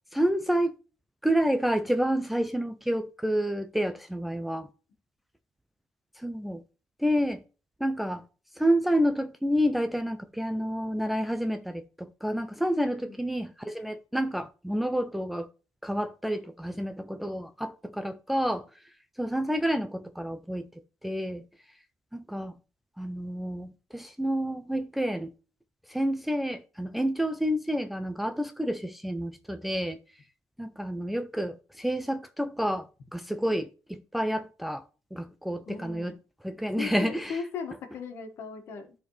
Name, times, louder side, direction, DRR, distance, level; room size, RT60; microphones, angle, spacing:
voice 1, 0.1-0.7 1.2-4.7 6.2-6.6 7.0-7.4 7.8-8.2 8.6-15.5 15.8-18.6 19.2-20.7 21.0-21.4 22.1-22.5 23.0-25.3 25.9-30.0 30.6-34.8 35.1-36.2 36.4-37.4, equal, ahead, 0.4 m, -29 dB
voice 2, 35.7-36.2 36.8-38.9, left 6 dB, 60° left, 1.7 m, -37 dB
13.0 x 4.3 x 3.2 m
cardioid pair, 160°, 5 cm